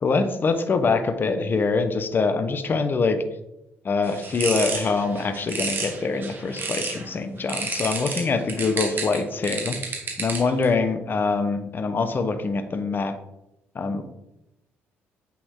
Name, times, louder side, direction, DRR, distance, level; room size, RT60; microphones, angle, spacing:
voice 1, 0.0-3.2 3.8-9.8 10.2-13.2 13.7-14.0, left 4 dB, 40° left, 9 dB, 1.1 m, -24 dB
sound 1, 4.0-7.1 7.5-10.6, right 4 dB, 40° right, 1.9 m, -31 dB
8.5 x 6.0 x 3.8 m, 0.89 s
supercardioid pair, 75°, 5 cm